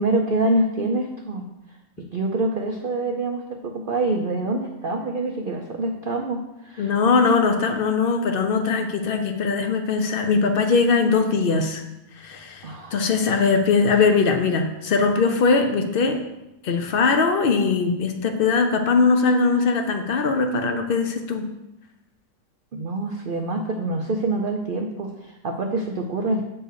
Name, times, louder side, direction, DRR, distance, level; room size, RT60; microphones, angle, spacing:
voice 1, 0.0-1.5 2.1-6.9 12.6-13.1 22.7-26.4, right 2 dB, 85° right, 2 dB, 0.4 m, -26 dB
voice 2, 6.8-11.8 12.2-16.2 16.6-21.5, left 4 dB, 75° left, 5 dB, 0.5 m, -21 dB
6.6 x 4.4 x 6.4 m, 0.93 s
omnidirectional pair, 1.8 m